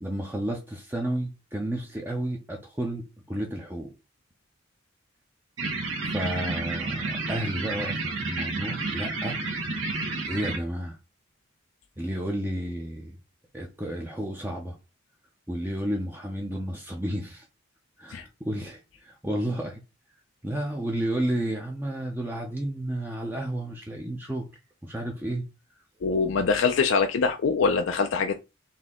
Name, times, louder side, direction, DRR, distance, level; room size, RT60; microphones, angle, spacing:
voice 1, 0.0-3.9 6.0-9.4 10.3-11.0 12.0-13.2 13.5-14.7 15.5-17.5 18.0-19.8 20.4-24.5 24.8-25.5, right 1 dB, 10° right, 0.5 m, -32 dB
sound 1, 5.6-10.6, right 3 dB, 85° right, 1.2 m, -30 dB
voice 2, 26.0-28.4, left 5 dB, 75° left, 0.4 m, -23 dB
4.1 x 2.8 x 3.6 m
head